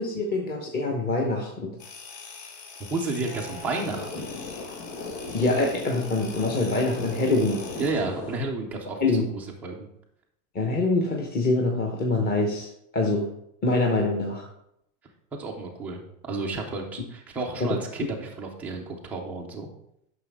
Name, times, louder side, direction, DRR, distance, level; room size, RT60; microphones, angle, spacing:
voice 1, 0.0-1.7 5.3-7.6 9.0-9.2 10.5-13.3 13.6-14.5 17.6-17.7, left 2 dB, 20° left, 0 dB, 0.9 m, -25 dB
sound 1, 1.8-7.9, left 5 dB, 40° left, 1.8 m, -44 dB
voice 2, 2.9-4.3 7.8-9.0 9.3-9.9 15.3-19.7, right 3 dB, 5° right, -2 dB, 0.3 m, -31 dB
sound 2, 3.3-8.4, left 3 dB, 80° left, 1.8 m, -37 dB
9.2 x 6.1 x 3.5 m, 0.76 s
supercardioid pair, 140°, 50 cm